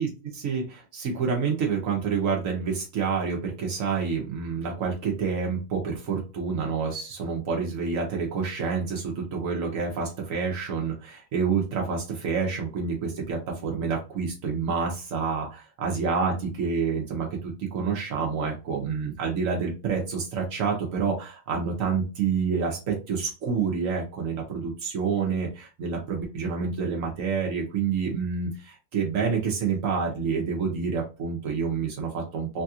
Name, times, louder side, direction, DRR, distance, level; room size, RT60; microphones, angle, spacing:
voice 1, 0.3-32.6, right 5 dB, 90° right, 0 dB, 1.2 m, -28 dB
3.3 x 2.4 x 2.7 m, 0.31 s
omnidirectional pair, 1.4 m